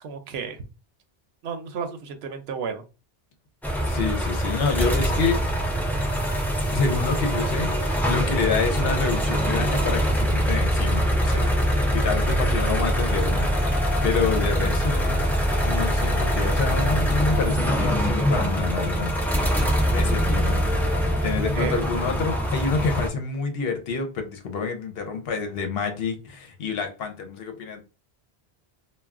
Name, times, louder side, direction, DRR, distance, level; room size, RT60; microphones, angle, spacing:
voice 1, 0.0-0.6 1.4-2.8 21.5-21.9, right 6 dB, 80° right, 0.8 m, -32 dB
sound 1, 3.6-23.1, equal, 5° left, 0.3 m, -23 dB
voice 2, 3.8-5.4 6.7-15.3 15.6-19.1 19.9-20.6 21.2-27.8, left 5 dB, 70° left, 0.9 m, -28 dB
2.3 x 2.2 x 3.5 m
omnidirectional pair, 1.1 m